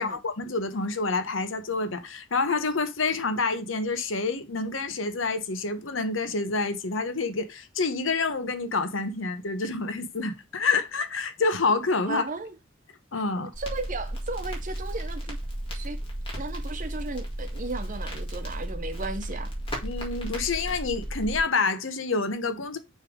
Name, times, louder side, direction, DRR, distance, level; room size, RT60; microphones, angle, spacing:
voice 1, 0.0-12.2 13.1-13.5 19.8-22.8, left 3 dB, 75° left, 1.0 m, -28 dB
voice 2, 12.0-12.6 13.4-15.4 15.7-16.0 16.4-19.5, right 3 dB, 40° right, 0.8 m, -35 dB
Crackle, 13.5-21.4, right 1 dB, 30° left, 2.0 m, -34 dB
6.4 x 3.4 x 5.0 m
head